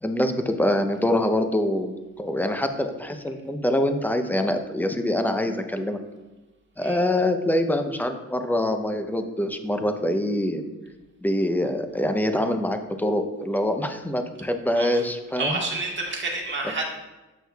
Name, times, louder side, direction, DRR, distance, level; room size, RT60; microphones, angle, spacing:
voice 1, 0.0-6.0 6.8-10.6 11.2-15.6, left 1 dB, 5° left, 7 dB, 0.6 m, -25 dB
voice 2, 14.7-15.1 15.4-16.8, right 3 dB, 40° right, 0 dB, 1.5 m, -29 dB
8.1 x 6.1 x 2.3 m, 1.1 s
cardioid pair, 90°, 30 cm